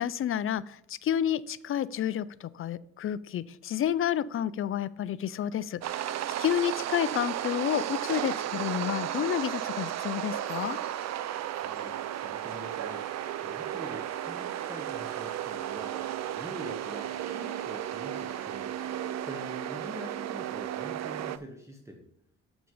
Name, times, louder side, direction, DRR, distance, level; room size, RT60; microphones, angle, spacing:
voice 1, 0.0-6.1 6.4-10.8, left 10 dB, 45° left, 17 dB, 0.4 m, -30 dB
sound 1, 5.8-21.4, right 11 dB, 60° right, 0.5 m, -34 dB
sound 2, 8.1-19.7, right 1 dB, 85° right, 3.9 m, -55 dB
voice 2, 11.6-22.0, equal, 10° right, 3 dB, 1.1 m, -46 dB
7.1 x 6.2 x 5.5 m, 0.76 s
cardioid pair, 90°, 30 cm